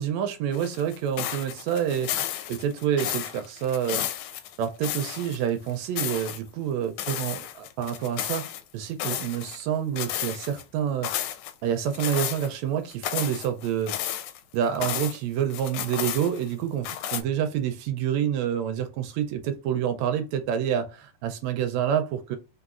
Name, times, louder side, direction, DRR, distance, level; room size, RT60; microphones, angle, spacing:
voice 1, 0.0-4.1 4.6-8.5 8.7-11.3 11.6-14.0 14.5-22.4, right 9 dB, 80° right, 1.7 m, -28 dB
sound 1, 0.5-5.4 5.7-6.4 7.0-8.6 9.0-9.6 10.0-10.6 11.0-11.5 11.9-12.5 12.9-15.2 15.5-16.5 16.8-17.2, left 11 dB, 85° left, 2.0 m, -32 dB
4.0 x 3.8 x 2.4 m
omnidirectional pair, 3.4 m